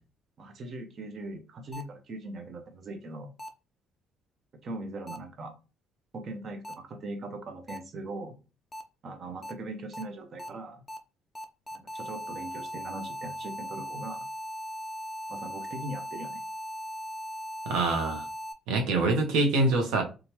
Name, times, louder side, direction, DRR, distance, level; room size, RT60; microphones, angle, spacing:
voice 1, 0.4-3.3 4.6-5.5 6.1-8.4 9.0-10.8 11.7-14.3 15.3-16.4, right 2 dB, 45° right, 0.6 m, -40 dB
sound 1, 1.7-1.8 3.4-3.5 5.1-5.2 6.6-6.7 7.7-7.8 8.7-8.8 9.4-9.5 9.9-10.0 10.4-10.5 10.9-11.0 11.3-18.5, equal, 10° left, 0.4 m, -38 dB
voice 2, 17.7-18.2 18.7-20.0, right 2 dB, 85° right, 0.8 m, -25 dB
3.1 x 2.3 x 2.9 m
cardioid pair, 110°, 0 cm